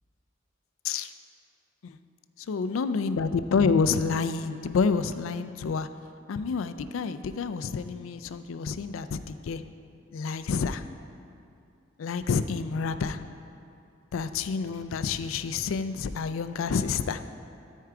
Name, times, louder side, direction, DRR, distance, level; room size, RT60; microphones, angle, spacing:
voice 1, 2.5-5.9 6.3-9.6 10.1-10.8 12.0-13.2 14.1-17.2, left 5 dB, 90° left, 11 dB, 0.4 m, -28 dB
13.0 x 4.6 x 4.8 m, 2.6 s
head